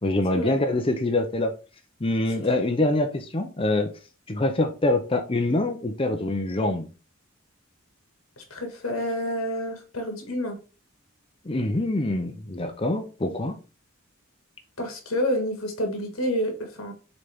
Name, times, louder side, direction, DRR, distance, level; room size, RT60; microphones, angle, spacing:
voice 1, 0.0-1.5 2.0-3.9 4.3-6.9 11.4-13.5, left 2 dB, 25° left, 5 dB, 0.7 m, -25 dB
voice 2, 8.4-10.6 14.8-16.9, equal, 90° left, 4 dB, 1.9 m, -28 dB
6.8 x 4.1 x 3.5 m, 0.33 s
head